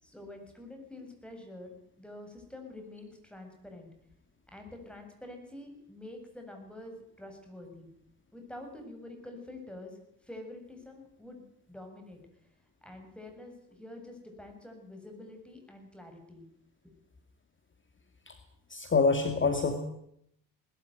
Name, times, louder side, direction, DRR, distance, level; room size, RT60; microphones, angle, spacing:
voice 1, 0.0-3.9 4.5-7.9 8.3-12.2 12.8-16.5 16.8-16.9, left 1 dB, ahead, 4 dB, 7.5 m, -47 dB
voice 2, 18.7-19.8, left 4 dB, 25° left, 7 dB, 2.4 m, -26 dB
20.0 x 13.5 x 9.5 m, 0.73 s
supercardioid pair, 75°, 45 cm